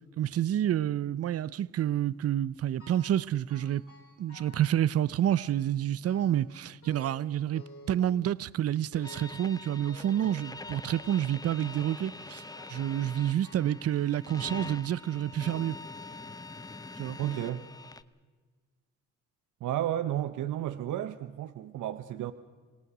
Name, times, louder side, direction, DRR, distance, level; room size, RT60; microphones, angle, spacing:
voice 1, 0.2-3.8 4.2-15.8 17.0-17.2, right 11 dB, 50° right, 0.6 m, -29 dB
sound 1, 2.8-3.2 3.5-4.8 5.3-5.7 6.0-6.5 6.8-8.5 8.9-9.4 9.8-10.5 10.9-11.3 11.6-12.1 12.5-13.0 13.4-13.9 14.3-15.3 16.0-16.1 16.9-17.0 17.4-17.5, left 3 dB, 45° left, 4.8 m, -53 dB
sound 2, 9.0-18.0, left 3 dB, 10° left, 0.8 m, -44 dB
voice 2, 17.2-17.6 19.6-22.3, right 12 dB, 75° right, 0.9 m, -32 dB
27.0 x 18.0 x 6.1 m
cardioid pair, 90°, 30 cm